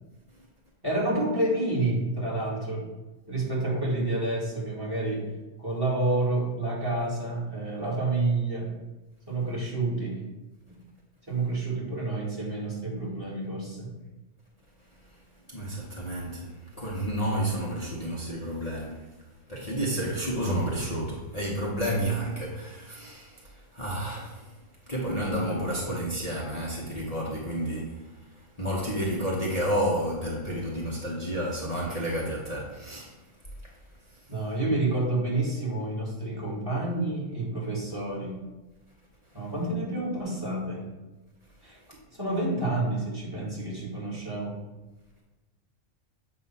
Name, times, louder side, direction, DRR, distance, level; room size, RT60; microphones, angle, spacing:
voice 1, 0.8-2.9 3.3-5.3 5.6-8.7 9.3-10.2 11.3-13.9 25.4-26.0 34.3-38.3 39.3-40.9 41.6-41.8 42.1-44.6, right 2 dB, 20° right, -5 dB, 1.8 m, -29 dB
voice 2, 15.5-19.1 19.5-24.5 24.9-28.2 28.6-33.1, right 1 dB, 30° left, -6 dB, 1.0 m, -30 dB
7.7 x 2.7 x 5.5 m, 1.1 s
omnidirectional pair, 1.3 m